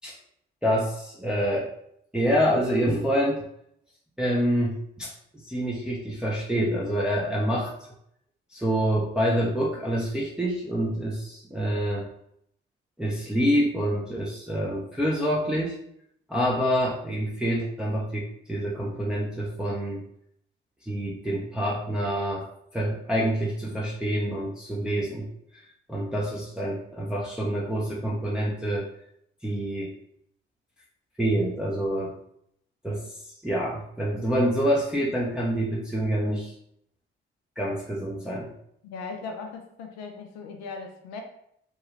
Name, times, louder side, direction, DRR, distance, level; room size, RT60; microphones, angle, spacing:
voice 1, 0.6-1.7 2.1-3.4 4.2-5.1 5.4-7.7 8.5-12.1 13.0-15.8 16.3-20.1 20.8-22.4 22.7-25.6 25.9-28.9 29.4-29.9 31.2-32.1 32.8-36.5 37.6-38.5, equal, 5° right, -5 dB, 0.7 m, -27 dB
voice 2, 38.8-41.2, left 4 dB, 65° left, 4 dB, 0.5 m, -38 dB
2.9 x 2.3 x 3.2 m, 0.73 s
hypercardioid pair, 40°, 29 cm